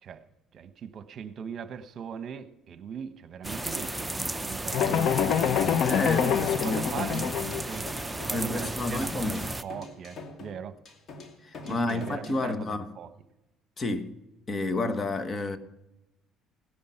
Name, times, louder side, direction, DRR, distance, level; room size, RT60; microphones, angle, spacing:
voice 1, 0.5-5.5 6.1-6.2 6.6-7.4 7.7-10.8 11.6-13.1, right 7 dB, 50° right, 1.1 m, -40 dB
Hearing rain, 3.4-9.6, right 2 dB, 10° right, 0.6 m, -34 dB
sound 1, 4.7-7.6, left 8 dB, 65° left, 0.8 m, -26 dB
sound 2, 5.5-12.4, left 3 dB, 45° left, 2.5 m, -45 dB
voice 2, 5.8-7.3 8.3-9.5 11.4-12.9 13.8-14.1 14.5-15.6, left 2 dB, 30° left, 1.3 m, -30 dB
16.5 x 10.5 x 5.7 m
cardioid pair, 100°, 0 cm